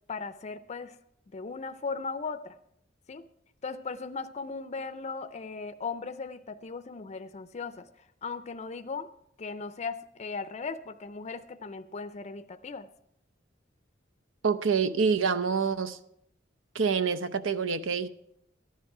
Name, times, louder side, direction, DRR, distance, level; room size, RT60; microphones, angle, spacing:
voice 1, 0.1-1.0 1.3-2.6 3.1-3.3 3.6-7.9 8.2-9.1 9.4-12.9, left 4 dB, 35° left, 0.5 m, -37 dB
voice 2, 14.4-16.0 16.7-18.1, right 5 dB, 85° right, 0.7 m, -26 dB
14.0 x 10.5 x 4.8 m
head